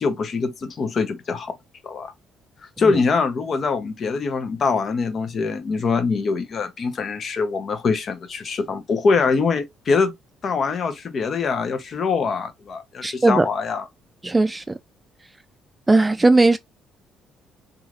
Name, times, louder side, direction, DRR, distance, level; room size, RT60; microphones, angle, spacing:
voice 1, 0.0-1.5 1.8-2.1 2.8-10.1 10.4-13.9, left 4 dB, 50° left, 0.7 m, -23 dB
voice 2, 13.0-13.5 14.2-14.7 15.9-16.6, right 2 dB, 15° right, 0.3 m, -17 dB
3.1 x 2.4 x 2.4 m
cardioid pair, 95°, 0 cm